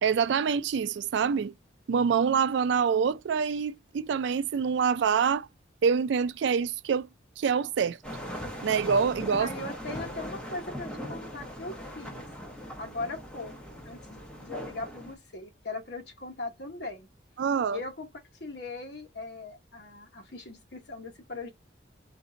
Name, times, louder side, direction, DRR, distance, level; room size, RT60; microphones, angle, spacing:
voice 1, 0.0-1.5 1.9-5.5 5.8-7.1 7.4-8.0 8.6-9.5 17.4-17.8, right 6 dB, 70° right, 0.3 m, -26 dB
sound 1, 8.0-15.1, equal, 5° left, 0.8 m, -40 dB
voice 2, 9.4-12.3 12.8-17.1 17.7-18.1 18.4-21.5, left 3 dB, 65° left, 1.1 m, -39 dB
3.6 x 2.6 x 3.9 m
head